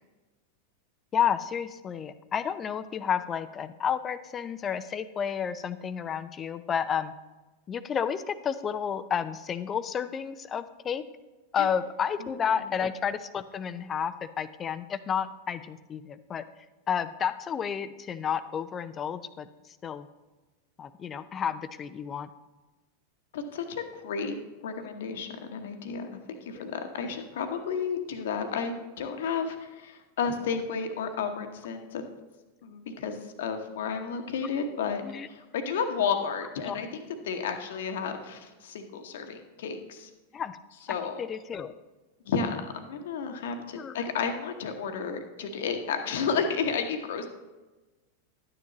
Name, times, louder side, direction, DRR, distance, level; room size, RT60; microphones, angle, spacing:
voice 1, 1.1-7.1 7.7-11.0 11.5-16.4 16.9-20.1 20.8-22.3 27.0-27.1 34.8-35.3 36.6-36.8 40.3-40.6 40.9-41.7 43.7-44.0, left 8 dB, 25° left, 13 dB, 0.5 m, -31 dB
voice 2, 23.3-24.4 24.6-32.0 32.6-36.9 37.2-40.1 40.9-41.2 42.2-47.3, left 6 dB, 55° left, 6 dB, 1.0 m, -32 dB
11.5 x 9.4 x 3.0 m, 1.2 s
figure-of-eight pair, 90°, 0 cm